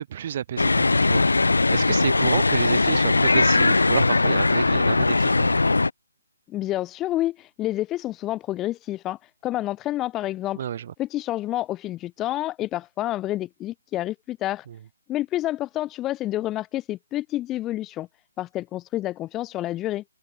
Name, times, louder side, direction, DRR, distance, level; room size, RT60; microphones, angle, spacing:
voice 1, 0.0-1.4 1.7-5.6 10.6-10.9, right 9 dB, 40° right, 1.6 m, -30 dB
sound 1, 0.6-5.9, left 3 dB, 90° left, 0.4 m, -20 dB
voice 2, 6.5-10.6 11.0-14.7 15.1-18.1 18.4-20.0, left 14 dB, 15° left, 0.7 m, -29 dB
hypercardioid pair, 155°, 0 cm